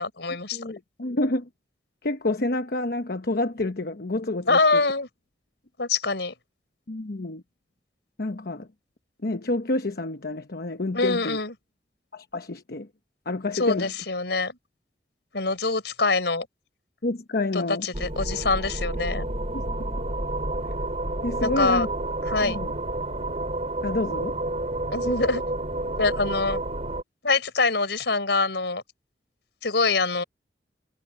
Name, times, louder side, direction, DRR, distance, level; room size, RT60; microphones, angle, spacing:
voice 1, 0.0-0.6 4.5-5.1 5.8-6.3 10.9-11.5 13.5-14.6 15.3-16.5 17.5-19.3 21.4-21.9 22.3-22.6 24.9-25.4 25.8-26.6 27.2-28.8 29.6-30.2, left 3 dB, 75° left, 4.8 m, -24 dB
voice 2, 0.5-1.5 2.0-4.8 6.9-7.4 8.2-8.7 9.2-11.4 12.1-12.9 13.3-13.9 17.0-17.9 19.5-20.0 21.2-21.9 22.4-22.7 23.8-24.4, left 2 dB, 60° left, 1.0 m, -28 dB
sound 1, 17.9-27.0, right 2 dB, 40° right, 4.9 m, -30 dB
head